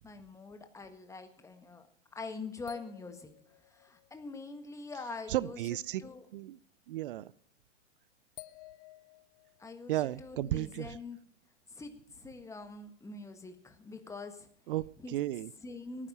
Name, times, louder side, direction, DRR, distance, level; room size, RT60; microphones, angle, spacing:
voice 1, 0.0-1.9 2.1-3.3 3.7-6.3 9.6-11.2 11.7-14.5 15.0-15.2 15.6-16.1, left 3 dB, 10° left, 7 dB, 1.6 m, -44 dB
sound 1, 2.7-4.6 7.0-7.1 8.4-9.8, left 18 dB, 35° left, 0.5 m, -54 dB
voice 2, 5.3-6.0 6.3-6.6 6.9-7.3 9.9-10.9 14.7-15.5, right 14 dB, 50° right, 21 dB, 0.5 m, -34 dB
17.5 x 9.9 x 5.6 m, 0.62 s
hypercardioid pair, 110°, 36 cm